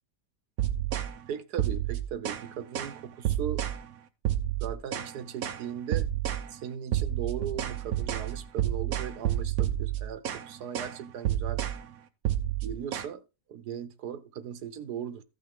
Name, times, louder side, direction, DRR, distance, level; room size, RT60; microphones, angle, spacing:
sound 1, 0.6-1.1 1.6-2.5 2.7-3.0 3.2-3.8 4.2-5.1 5.4-5.6 5.9-6.5 6.9-10.5 10.7-11.0 11.2-11.8 12.2-13.0, right 11 dB, 65° right, 1.3 m, -29 dB
voice 1, 1.3-3.6 4.6-6.1 6.5-11.6 12.6-13.2 13.5-15.2, right 8 dB, 85° right, 1.5 m, -38 dB
14.5 x 5.7 x 3.6 m
omnidirectional pair, 1.7 m